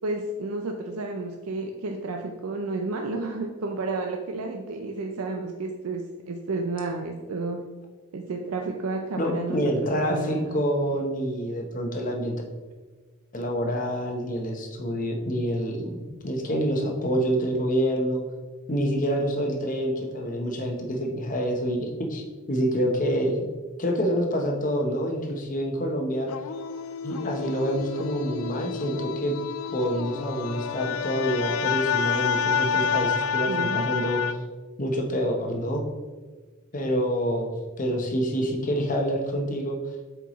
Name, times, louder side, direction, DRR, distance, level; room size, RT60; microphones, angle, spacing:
voice 1, 0.0-7.6 8.1-10.6 33.5-33.8, right 3 dB, 90° right, 3 dB, 0.5 m, -31 dB
voice 2, 9.2-12.4 13.3-16.0 16.2-18.2 18.7-23.4 23.8-26.3 27.0-29.3 29.7-34.4 34.8-35.8 36.7-37.5 37.8-39.8, equal, 40° left, 2 dB, 0.8 m, -27 dB
sound 1, 26.3-34.3, left 7 dB, 80° left, 0.3 m, -29 dB
7.7 x 4.6 x 3.0 m, 1.3 s
head